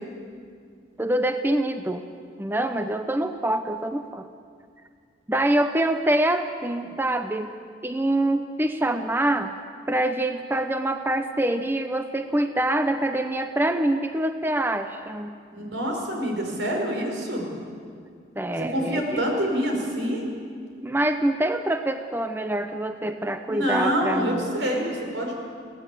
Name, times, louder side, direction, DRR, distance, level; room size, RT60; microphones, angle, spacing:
voice 1, 1.0-2.0 2.4-4.3 5.3-7.5 7.8-9.5 9.9-15.3 18.4-19.2 20.8-24.5, right 1 dB, 10° right, 8 dB, 0.6 m, -25 dB
voice 2, 15.5-17.5 18.6-20.2 23.5-25.4, equal, 80° right, 1 dB, 4.9 m, -26 dB
21.5 x 16.5 x 8.3 m, 2.2 s
head